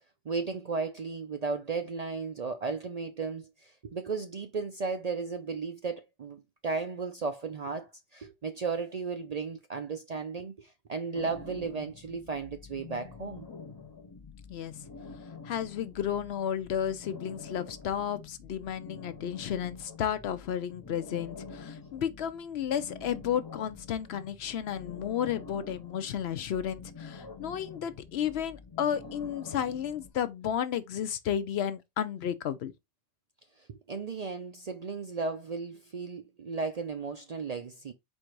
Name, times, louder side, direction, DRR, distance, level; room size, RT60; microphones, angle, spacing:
voice 1, 0.2-13.5 33.6-37.9, right 4 dB, 50° right, 0.5 m, -35 dB
sound 1, 11.1-30.1, left 4 dB, 30° left, 0.4 m, -47 dB
voice 2, 15.4-32.7, left 9 dB, 70° left, 0.8 m, -32 dB
4.4 x 2.6 x 4.5 m
omnidirectional pair, 1.2 m